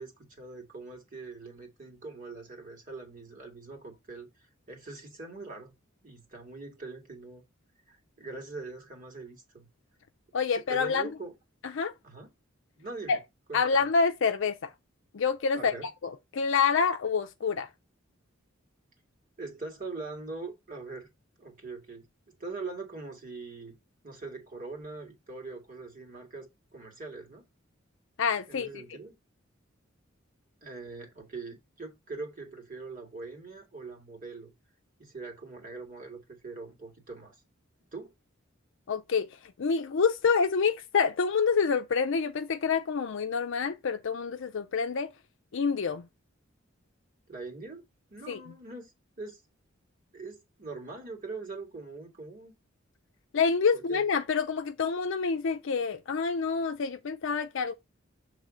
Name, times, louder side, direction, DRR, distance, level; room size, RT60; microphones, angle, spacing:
voice 1, 0.0-5.7 6.0-7.4 7.9-9.7 10.7-11.3 12.0-12.3 12.8-13.2 13.5-13.8 15.5-15.9 19.4-21.1 21.4-23.8 24.0-27.5 28.5-29.1 30.6-34.5 35.0-37.4 37.9-38.1 47.3-47.8 48.1-49.4 50.1-52.5 53.7-54.0, right 3 dB, 40° right, 2.1 m, -42 dB
voice 2, 10.3-11.1 11.7-11.9 13.1-13.2 13.5-14.7 15.1-15.7 16.0-17.7 28.2-28.8 38.9-45.1 45.5-46.1 48.3-48.4 53.3-57.7, left 5 dB, 65° left, 0.5 m, -27 dB
6.7 x 3.3 x 5.0 m
head